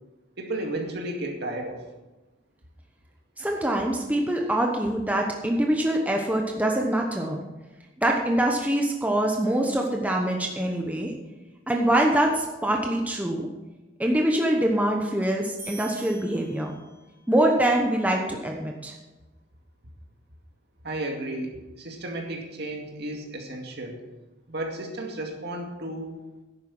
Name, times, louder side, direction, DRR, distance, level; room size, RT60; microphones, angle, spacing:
voice 1, 0.4-1.8 20.8-24.0 24.5-26.2, right 1 dB, 55° right, 1 dB, 2.3 m, -33 dB
voice 2, 3.4-7.4 8.0-11.1 11.7-13.5 14.0-16.7 17.3-18.9, right 1 dB, 10° right, 1 dB, 1.0 m, -24 dB
sound 1, 15.6-17.2, right 3 dB, 30° right, 4.1 m, -44 dB
11.0 x 9.2 x 6.0 m, 1.1 s
head